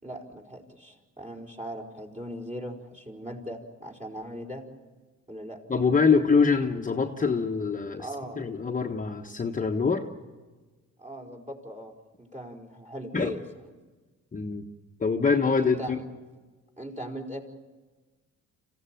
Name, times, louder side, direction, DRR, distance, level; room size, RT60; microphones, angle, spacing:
voice 1, 0.0-4.6 5.3-5.6 8.0-8.5 11.0-11.9 12.2-13.7 15.6-16.0 16.8-17.4, equal, 25° right, 0 dB, 4.8 m, -39 dB
voice 2, 5.7-8.1 8.4-10.1 13.1-13.4 14.3-14.6 15.0-16.0, left 5 dB, 25° left, 2 dB, 1.3 m, -24 dB
27.0 x 16.0 x 9.2 m, 1.3 s
cardioid pair, 90°, 30 cm